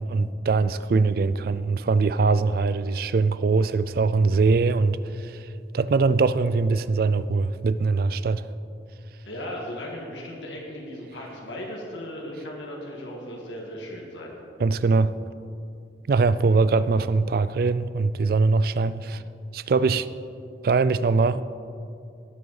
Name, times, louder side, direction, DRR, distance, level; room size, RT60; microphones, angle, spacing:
voice 1, 0.0-5.4 5.7-8.4 14.6-15.1 16.1-19.2 19.5-20.1 20.6-21.4, right 4 dB, 55° right, 15 dB, 0.3 m, -22 dB
voice 2, 9.3-14.4, left 1 dB, 85° left, -2 dB, 1.7 m, -36 dB
18.0 x 7.8 x 4.0 m, 2.5 s
head